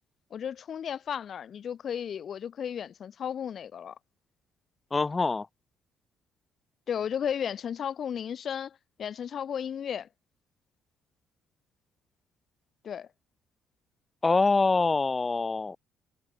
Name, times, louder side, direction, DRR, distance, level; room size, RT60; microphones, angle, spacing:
voice 1, 0.3-3.9 6.9-10.1 12.8-13.1, left 8 dB, 50° left, 1.6 m, -34 dB
voice 2, 4.9-5.5 14.2-15.8, left 3 dB, 20° left, 0.8 m, -25 dB
cardioid pair, 120°, 0 cm